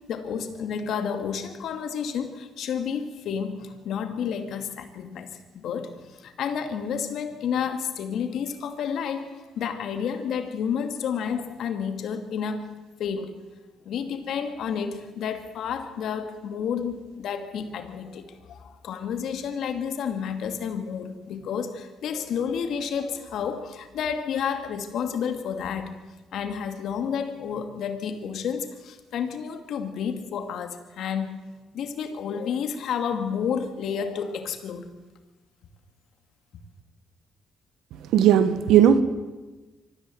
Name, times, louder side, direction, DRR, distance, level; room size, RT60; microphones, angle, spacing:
voice 1, 0.1-12.7 13.0-13.4 13.8-25.9 26.3-31.4 31.7-34.9, left 7 dB, 75° left, 7 dB, 2.4 m, -30 dB
voice 2, 38.1-39.0, right 9 dB, 85° right, 12 dB, 1.4 m, -17 dB
23.5 x 15.0 x 7.9 m, 1.2 s
cardioid pair, 90°, 0 cm